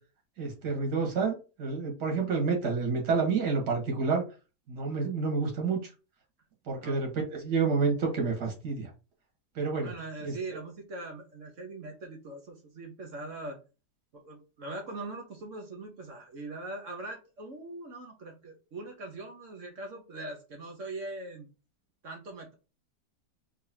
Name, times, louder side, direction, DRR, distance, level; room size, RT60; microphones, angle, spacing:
voice 1, 0.4-4.2 4.7-5.8 6.7-8.9 9.6-9.9 10.2-10.3, right 4 dB, 80° right, 1 dB, 2.2 m, -29 dB
voice 2, 9.8-13.6 14.1-21.5 22.0-22.5, right 2 dB, 55° right, 2 dB, 1.2 m, -41 dB
4.0 x 3.4 x 2.7 m, 0.30 s
omnidirectional pair, 1.7 m